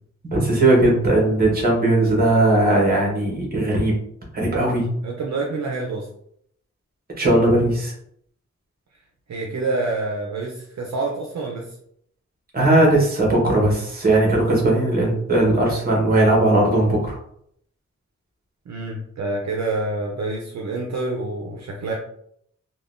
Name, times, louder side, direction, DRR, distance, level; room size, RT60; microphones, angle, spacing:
voice 1, 0.3-3.9 4.3-4.8 7.2-7.9 12.5-17.2, right 1 dB, 30° right, -2 dB, 1.0 m, -18 dB
voice 2, 5.0-6.1 9.3-11.7 18.7-21.9, right 3 dB, 65° right, 0 dB, 0.5 m, -27 dB
3.6 x 2.2 x 2.4 m, 0.68 s
wide cardioid pair, 175°, 30 cm